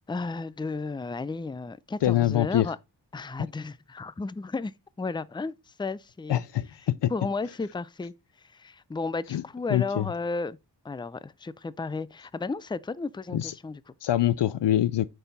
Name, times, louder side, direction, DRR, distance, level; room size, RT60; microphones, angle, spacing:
voice 1, 0.1-2.8 3.1-6.4 7.1-10.6 10.8-13.9, left 3 dB, 10° left, 0.4 m, -33 dB
voice 2, 2.0-2.7 6.3-7.1 9.3-9.4 9.7-10.1 13.3-13.5 14.0-15.1, left 12 dB, 85° left, 0.5 m, -24 dB
8.9 x 4.5 x 4.0 m
wide cardioid pair, 75°, 41 cm